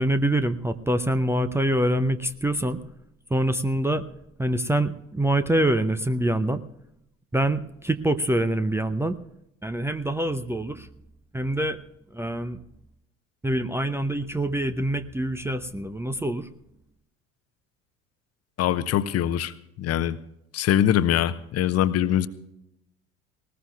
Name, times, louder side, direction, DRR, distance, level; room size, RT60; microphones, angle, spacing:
voice 1, 0.0-2.8 3.3-4.0 4.4-6.6 7.3-9.2 9.6-10.9 11.3-11.8 12.1-12.6 13.4-16.5, right 1 dB, 5° right, 11 dB, 0.7 m, -25 dB
voice 2, 18.6-20.2 20.5-22.3, left 11 dB, 40° left, 14 dB, 0.9 m, -23 dB
19.5 x 19.0 x 2.4 m, 0.82 s
figure-of-eight pair, 60°, 38 cm